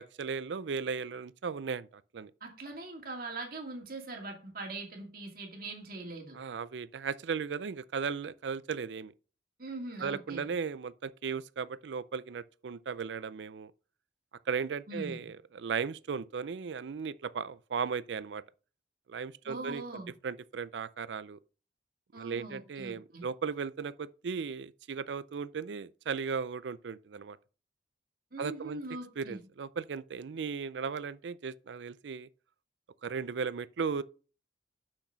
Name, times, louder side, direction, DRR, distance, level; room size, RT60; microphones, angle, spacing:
voice 1, 0.0-2.3 6.3-9.1 10.0-13.7 14.5-18.4 19.1-21.4 22.1-27.4 28.4-28.8 29.2-32.3 33.0-34.0, right 5 dB, 90° right, 0.4 m, -36 dB
voice 2, 2.4-6.4 9.6-10.5 14.9-15.2 19.5-20.1 22.1-23.3 28.3-29.4, right 2 dB, 55° right, 2.4 m, -42 dB
6.5 x 6.1 x 5.7 m
head